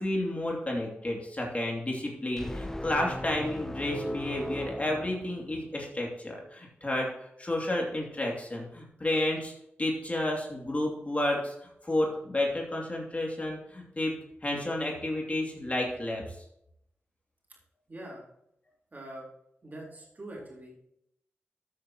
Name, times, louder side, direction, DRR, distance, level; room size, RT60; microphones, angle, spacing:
voice 1, 0.0-7.1 7.4-9.5 9.8-16.4, left 1 dB, 30° left, -1 dB, 2.6 m, -31 dB
sound 1, 2.4-5.8, left 1 dB, 10° left, 0.6 m, -38 dB
voice 2, 17.9-18.2 18.9-19.3 19.6-20.7, right 1 dB, 40° right, -3 dB, 3.9 m, -43 dB
13.0 x 8.1 x 3.0 m, 0.78 s
cardioid pair, 50°, 4 cm